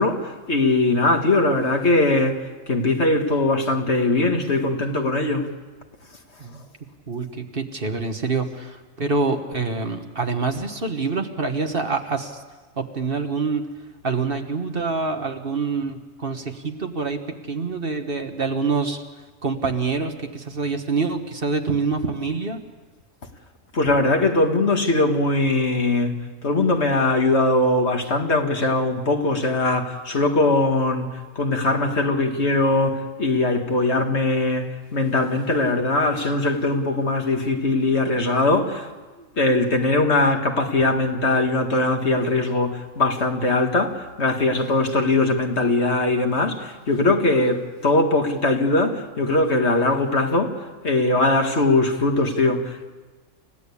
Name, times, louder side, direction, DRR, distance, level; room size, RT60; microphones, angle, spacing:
voice 1, 0.0-5.4 23.7-26.1 26.4-31.1 31.4-34.7 34.9-38.9 39.4-50.6 50.8-52.9, left 2 dB, 55° left, 3 dB, 2.2 m, -21 dB
voice 2, 7.1-12.4 12.8-13.6 14.0-19.0 19.4-22.6, right 4 dB, 45° right, 5 dB, 1.6 m, -26 dB
29.5 x 15.5 x 8.5 m, 1.3 s
omnidirectional pair, 1.4 m